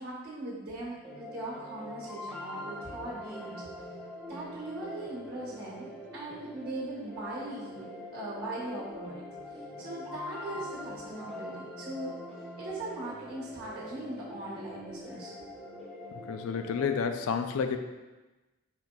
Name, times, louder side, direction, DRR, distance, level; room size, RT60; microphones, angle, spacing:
voice 1, 0.0-3.6 4.3-12.2 12.6-15.3, right 2 dB, 45° right, -7 dB, 1.3 m, -40 dB
sound 1, 1.0-17.0, left 1 dB, ahead, 0.5 m, -43 dB
voice 2, 16.3-17.8, left 6 dB, 65° left, 7 dB, 0.3 m, -30 dB
4.4 x 2.6 x 3.8 m, 1.1 s
head